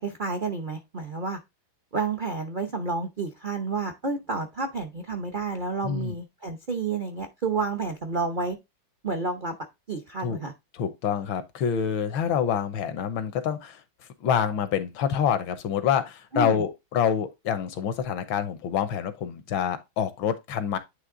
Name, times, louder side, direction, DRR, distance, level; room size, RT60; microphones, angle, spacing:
voice 1, 0.0-1.4 1.9-8.6 9.0-9.6 9.9-10.5 16.3-16.6, right 4 dB, 60° right, 0.5 m, -30 dB
voice 2, 5.8-6.1 10.2-10.4 10.7-13.8 14.2-20.8, left 8 dB, 80° left, 1.6 m, -27 dB
9.7 x 3.2 x 3.7 m
omnidirectional pair, 2.2 m